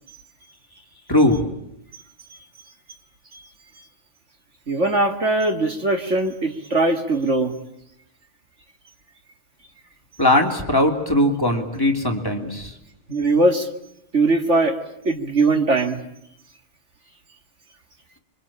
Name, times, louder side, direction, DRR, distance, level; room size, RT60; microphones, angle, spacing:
voice 1, 1.1-1.5 10.2-12.7, left 1 dB, 10° left, 2 dB, 3.0 m, -19 dB
voice 2, 4.7-7.5 13.1-13.7 14.1-14.8 15.0-16.0, right 2 dB, 35° right, 6 dB, 2.2 m, -20 dB
26.0 x 24.0 x 8.8 m, 0.81 s
omnidirectional pair, 2.4 m